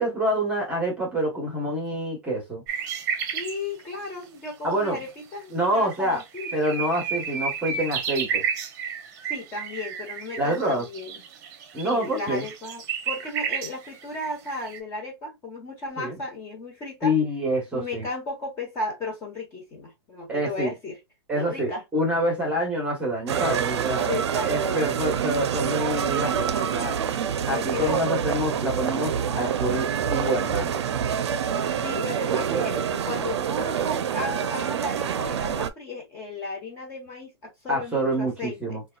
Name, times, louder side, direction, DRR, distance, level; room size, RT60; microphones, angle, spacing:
voice 1, 0.0-2.6 4.6-5.0 5.5-6.2 6.5-8.4 10.4-10.9 11.7-12.4 16.0-16.2 17.0-18.1 20.3-20.7 21.3-24.1 24.4-27.0 27.5-30.8 32.3-33.2 37.7-38.8, equal, 10° right, 1.1 m, -27 dB
sound 1, 2.7-3.6 5.0-5.1 5.6-5.7 5.9-14.8, right 6 dB, 45° right, 0.7 m, -31 dB
voice 2, 3.3-6.5 9.3-11.2 11.8-17.1 17.7-21.0 21.3-21.8 24.1-24.8 27.5-28.0 31.8-38.8, left 2 dB, 20° left, 1.1 m, -35 dB
sound 2, 23.3-35.7, right 8 dB, 80° right, 0.5 m, -26 dB
3.9 x 2.3 x 2.3 m
hypercardioid pair, 155°, 14 cm